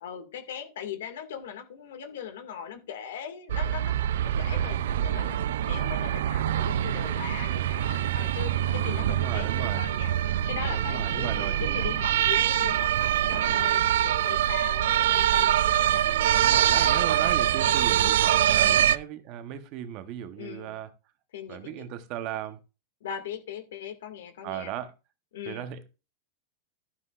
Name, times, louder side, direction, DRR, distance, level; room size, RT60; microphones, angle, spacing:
voice 1, 0.0-4.0 4.2-10.1 10.5-16.0 16.5-17.9 18.6-19.0 20.4-20.8 21.3-21.9 23.0-24.7 25.3-25.7, left 8 dB, 85° left, 2.0 m, -40 dB
sound 1, 3.5-19.0, right 11 dB, 80° right, 0.4 m, -24 dB
voice 2, 8.8-9.8 10.7-11.9 16.0-20.9 21.5-22.6 24.4-24.9 25.5-25.9, right 11 dB, 40° right, 1.0 m, -37 dB
12.0 x 9.8 x 2.4 m
supercardioid pair, 165°, 0 cm